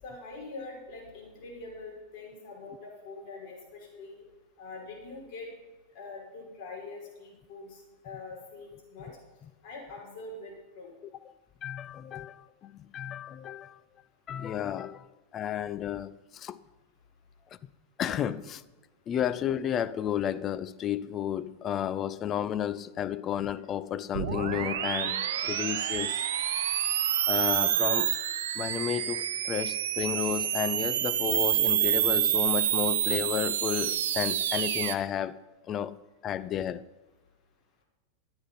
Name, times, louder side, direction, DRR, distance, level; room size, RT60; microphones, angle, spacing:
voice 1, 0.0-4.2 4.6-5.5 5.9-9.1 9.6-10.9, left 3 dB, 45° left, 5.6 m, -44 dB
voice 2, 11.6-13.8 14.3-15.1 15.3-16.6 18.0-18.6 19.1-26.2 27.3-28.1 28.5-35.4 35.6-36.0 36.2-36.8, left 10 dB, 30° left, 0.6 m, -32 dB
sound 1, 24.1-35.0, right 10 dB, 60° right, 0.8 m, -28 dB
13.5 x 10.0 x 5.7 m
figure-of-eight pair, 90°, 0 cm